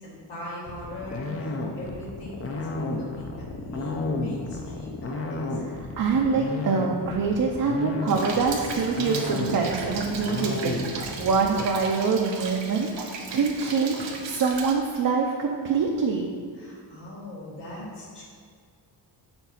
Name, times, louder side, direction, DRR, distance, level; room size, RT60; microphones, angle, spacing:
voice 1, 0.0-5.6 5.9-6.1 16.5-18.2, left 1 dB, 75° left, -6 dB, 2.0 m, -41 dB
sound 1, 0.7-11.6, left 3 dB, 35° left, 0.6 m, -32 dB
voice 2, 5.6-16.3, right 5 dB, 50° right, 0 dB, 0.6 m, -25 dB
Rain, 8.1-14.7, right 4 dB, 90° right, 1.0 m, -37 dB
7.0 x 4.0 x 5.7 m, 2.1 s
wide cardioid pair, 160°, 43 cm